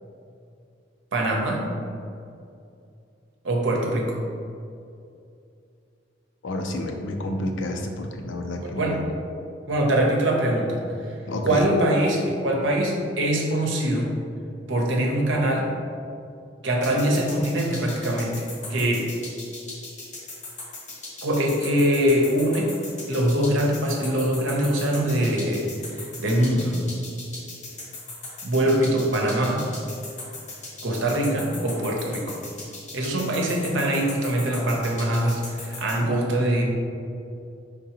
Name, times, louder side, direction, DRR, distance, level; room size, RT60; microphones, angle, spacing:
voice 1, 1.1-1.7 3.4-4.2 8.6-9.0 9.7-11.1 11.4-14.1 14.7-15.8 16.6-19.1 21.2-22.7 23.1-25.7 25.9-26.8 28.4-29.7 30.8-32.4 32.9-36.6, right 1 dB, 85° right, 0 dB, 0.8 m, -23 dB
voice 2, 6.4-9.1 11.3-11.7, left 1 dB, 85° left, 4 dB, 0.5 m, -29 dB
sound 1, 16.8-36.0, left 3 dB, 40° left, 1.0 m, -38 dB
4.8 x 3.6 x 2.9 m, 2.5 s
head